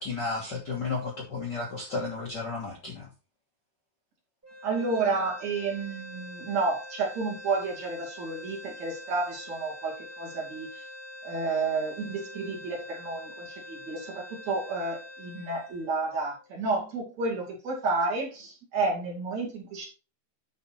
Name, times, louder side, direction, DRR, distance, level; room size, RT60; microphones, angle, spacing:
voice 1, 0.0-3.1, left 4 dB, 70° left, -2 dB, 1.0 m, -33 dB
sound 1, 4.4-16.7, left 1 dB, 10° right, 0.6 m, -45 dB
voice 2, 4.6-10.8 11.2-19.9, right 3 dB, 45° right, -2 dB, 3.5 m, -31 dB
10.5 x 4.2 x 4.3 m, 0.32 s
omnidirectional pair, 4.6 m